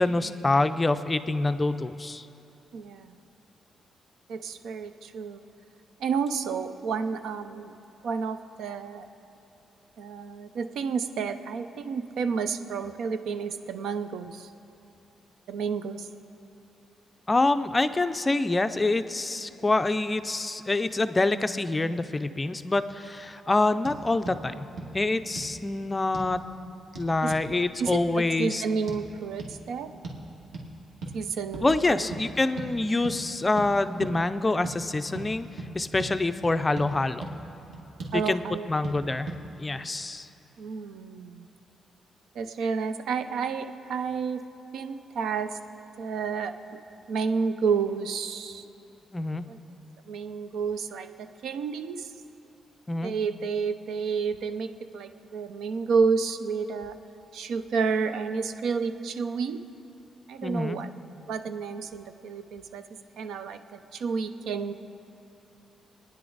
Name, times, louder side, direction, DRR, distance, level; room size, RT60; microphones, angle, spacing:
voice 1, 0.0-2.3 17.3-24.7 24.9-26.4 26.9-28.6 31.6-35.5 35.7-37.2 38.1-38.4 38.7-40.3 49.1-49.5 52.9-53.1 60.4-60.8, left 2 dB, 15° left, 10 dB, 0.4 m, -26 dB
voice 2, 2.7-3.2 4.3-5.4 6.0-7.7 8.0-9.1 10.0-14.5 15.5-16.1 27.2-27.3 27.8-29.9 31.1-32.1 38.1-38.7 40.6-41.5 42.3-44.4 44.7-45.6 46.0-46.5 47.1-48.6 49.5-49.6 50.1-52.1 53.0-57.0 57.3-59.6 60.3-60.9 61.3-62.8 63.2-64.7, right 5 dB, 75° right, 9 dB, 0.7 m, -30 dB
sound 1, 23.8-24.0 24.3-24.4 24.8-24.9 25.4-25.6 26.1-26.3 27.0-27.5 27.9-28.0 28.9-29.0 29.4-29.5 30.0-30.2 30.5-30.7 31.0-31.2 31.5-31.7 32.1-32.2 32.6-32.7 33.0-33.2 33.6-33.7 34.0-34.2 34.6-34.8 35.2-35.3 35.6-35.7 36.0-36.1 36.4-36.9 37.2-37.3 37.7-38.2 38.8-39.0 39.3-39.4, right 3 dB, 60° right, 2.1 m, -37 dB
26.0 x 9.9 x 4.0 m, 2.9 s
wide cardioid pair, 170°, 0 cm